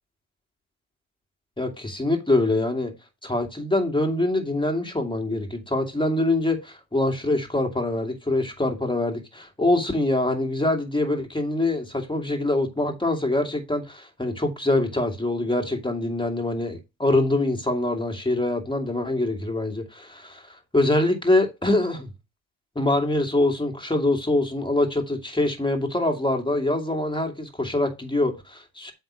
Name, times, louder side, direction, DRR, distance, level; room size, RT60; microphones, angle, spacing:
voice 1, 1.6-2.9 3.2-22.1 22.8-28.9, left 2 dB, 10° left, 2.5 m, -24 dB
8.0 x 3.7 x 6.2 m
hypercardioid pair, 55°, 43 cm